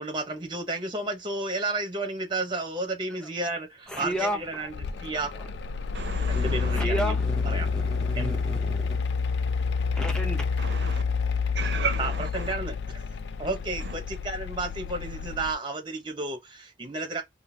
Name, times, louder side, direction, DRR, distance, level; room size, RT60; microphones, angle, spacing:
voice 1, 0.0-5.3 6.3-7.2 7.5-7.7 8.2-8.4 12.0-12.7 13.4-17.2, right 2 dB, 25° right, 0.8 m, -32 dB
voice 2, 3.9-4.6 4.9-5.0 5.3-5.5 6.3-9.0 10.0-10.4, equal, 5° left, 0.7 m, -33 dB
Mechanical fan, 4.2-15.5, left 5 dB, 70° left, 0.4 m, -29 dB
voice 3, 5.9-6.8 10.6-11.0 11.5-12.5 13.8-13.9, right 5 dB, 70° right, 0.6 m, -34 dB
3.7 x 2.0 x 2.7 m
head